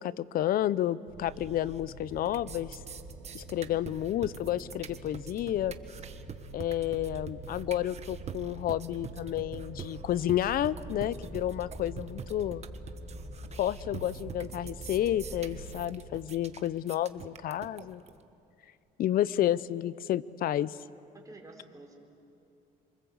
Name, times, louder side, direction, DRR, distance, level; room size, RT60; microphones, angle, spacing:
voice 1, 0.0-2.8 3.3-5.8 6.5-12.6 13.6-18.0 19.0-20.8, left 12 dB, 60° left, 19 dB, 0.7 m, -30 dB
sound 1, 1.1-15.8, right 2 dB, 85° right, 3.2 m, -45 dB
sound 2, 1.5-1.9 2.2-18.2, right 7 dB, 40° right, 1.3 m, -45 dB
voice 2, 21.1-22.0, right 2 dB, 20° right, 0 dB, 4.7 m, -50 dB
27.5 x 25.0 x 8.0 m, 2.6 s
cardioid pair, 110°, 17 cm